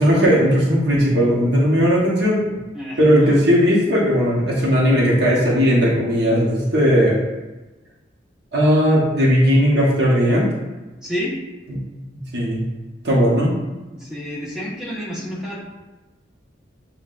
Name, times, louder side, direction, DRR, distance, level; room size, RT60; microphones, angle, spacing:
voice 1, 0.0-2.4 3.0-7.2 8.5-10.5 11.7-11.8 12.3-12.6 13.0-13.5, equal, 60° right, -5 dB, 1.1 m, -17 dB
voice 2, 2.7-3.3 11.0-11.3 13.9-15.6, equal, 5° right, -8 dB, 1.0 m, -29 dB
7.3 x 2.5 x 2.5 m, 1.1 s
head